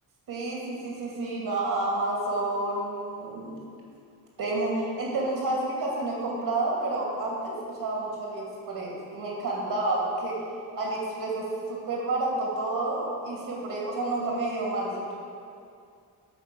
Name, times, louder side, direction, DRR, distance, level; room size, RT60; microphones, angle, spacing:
voice 1, 0.3-3.6 4.4-10.3 10.8-15.1, right 2 dB, 75° right, -3 dB, 2.4 m, -30 dB
11.0 x 4.0 x 6.8 m, 2.3 s
cardioid pair, 100°, 38 cm